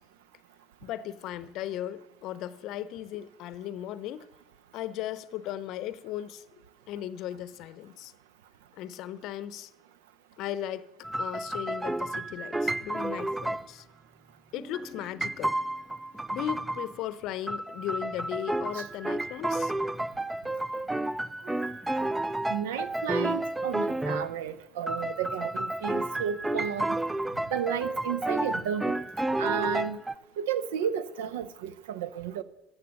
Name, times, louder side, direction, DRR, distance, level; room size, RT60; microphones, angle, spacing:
voice 1, 0.8-4.3 4.7-6.4 6.9-8.1 8.8-9.7 10.4-10.9 11.2-13.9 14.5-15.6 16.3-19.7, left 12 dB, 60° left, 0.6 m, -37 dB
sound 1, 11.0-13.7 14.5-17.0 17.5-24.3 24.9-30.1, right 1 dB, 10° right, 0.4 m, -31 dB
voice 2, 22.5-27.0 27.5-29.0 29.4-30.0 30.4-32.4, right 8 dB, 80° right, 0.6 m, -32 dB
13.5 x 7.3 x 6.5 m
hypercardioid pair, 70°, 0 cm